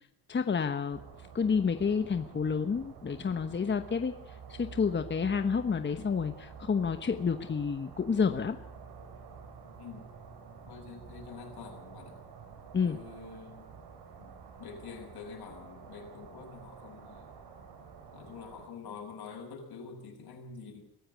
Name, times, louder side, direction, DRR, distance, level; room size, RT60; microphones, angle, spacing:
voice 1, 0.3-1.0 1.3-4.1 4.6-8.6 12.7-13.0, left 6 dB, 30° left, 8 dB, 1.1 m, -29 dB
sound 1, 0.9-18.7, right 6 dB, 80° right, 4.6 m, -49 dB
voice 2, 9.8-10.1 10.7-12.2 12.8-13.7 14.2-14.3 14.6-17.3 18.1-20.8, left 5 dB, 75° left, 3 dB, 6.7 m, -46 dB
23.5 x 13.5 x 9.1 m, 0.73 s
cardioid pair, 125°, 39 cm